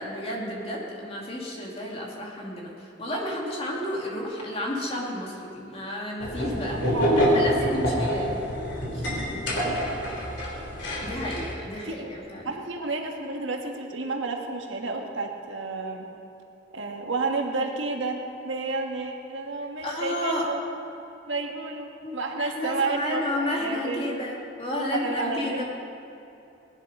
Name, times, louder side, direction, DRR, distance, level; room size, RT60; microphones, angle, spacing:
voice 1, 0.0-6.8 7.2-8.4 8.9-9.4 10.8-12.5 19.8-20.5 22.0-25.6, left 1 dB, 30° left, -2 dB, 2.4 m, -32 dB
sound 1, 6.2-11.5, equal, 65° left, 3.4 m, -26 dB
voice 2, 6.7-8.0 9.5-10.1 11.8-11.9 12.4-16.1 16.7-18.2 18.4-20.6 21.3-24.2 24.9-25.6, right 3 dB, 85° right, 2 dB, 1.6 m, -31 dB
18.5 x 11.0 x 5.4 m, 2.8 s
head